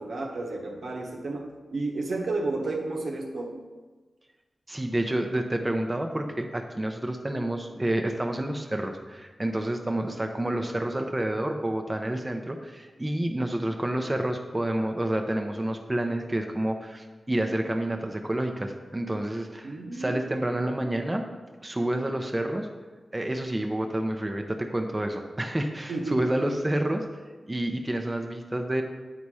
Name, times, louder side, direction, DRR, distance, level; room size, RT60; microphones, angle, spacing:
voice 1, 0.0-3.6 19.6-20.2 25.9-26.5, right 2 dB, 80° right, 0 dB, 1.1 m, -32 dB
voice 2, 4.7-21.3 21.6-22.7 23.1-27.0 27.5-28.8, right 1 dB, 20° right, 4 dB, 0.7 m, -29 dB
8.6 x 4.2 x 4.8 m, 1.3 s
cardioid pair, 65°, 0 cm